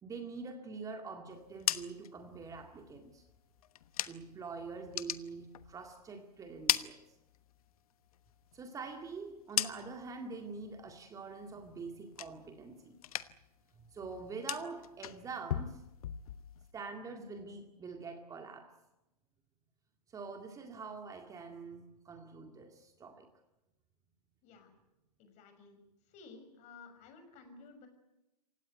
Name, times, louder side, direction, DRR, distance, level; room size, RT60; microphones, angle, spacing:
voice 1, 0.0-3.2 4.1-7.0 8.5-13.0 13.8-15.8 16.7-18.7 20.1-23.3, right 4 dB, 15° right, 5 dB, 2.1 m, -45 dB
sound 1, 1.4-4.5 4.8-6.1 6.4-7.7 8.1-10.2 10.6-11.0 11.4-12.7 13.0-13.6 13.8-16.7, left 11 dB, 60° left, 1.2 m, -39 dB
voice 2, 25.2-25.8 26.1-27.9, left 4 dB, 35° left, 7 dB, 6.1 m, -54 dB
27.0 x 17.0 x 9.3 m, 0.96 s
hypercardioid pair, 120°, 21 cm